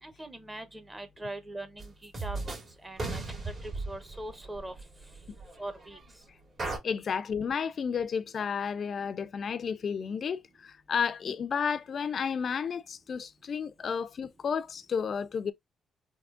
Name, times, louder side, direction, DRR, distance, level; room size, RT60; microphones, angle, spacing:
voice 1, 0.0-2.6 2.8-4.7 5.6-6.0, right 1 dB, 15° right, 0.9 m, -41 dB
sound 1, 1.8-1.9 2.1-2.7 3.0-6.1 6.6-6.8, right 3 dB, 45° right, 2.0 m, -37 dB
voice 2, 6.8-15.5, left 6 dB, 50° left, 0.4 m, -32 dB
3.6 x 2.8 x 2.3 m
cardioid pair, 90°, 0 cm